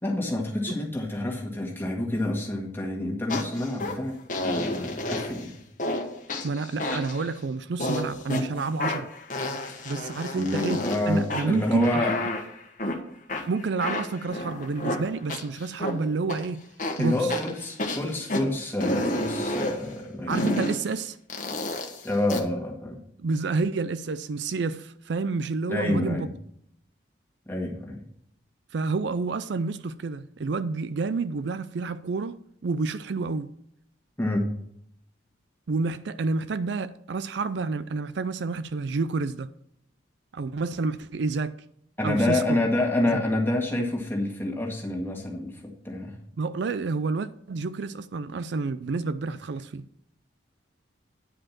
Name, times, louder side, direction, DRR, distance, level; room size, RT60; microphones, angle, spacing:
voice 1, 0.0-5.6 9.6-9.8 10.3-12.2 17.0-20.4 22.0-23.0 25.7-26.3 27.5-28.1 34.2-34.5 42.0-46.1, left 1 dB, 10° left, 1.9 m, -28 dB
sound 1, 3.3-3.9 4.3-5.4 5.8-6.0 6.3-7.3 7.8-8.4 8.8-11.0 11.3-13.0 13.3-15.9 16.3-16.4 16.8-18.4 18.8-19.8 20.3-20.8 21.3-22.4, left 1 dB, 40° left, 1.3 m, -30 dB
voice 2, 6.4-9.1 9.8-12.1 13.5-16.6 17.0-17.3 20.3-21.2 23.2-26.3 28.7-33.5 35.7-39.5 40.3-41.6 42.0-42.6 46.4-49.8, right 4 dB, 60° right, 0.4 m, -29 dB
9.9 x 5.1 x 7.3 m
head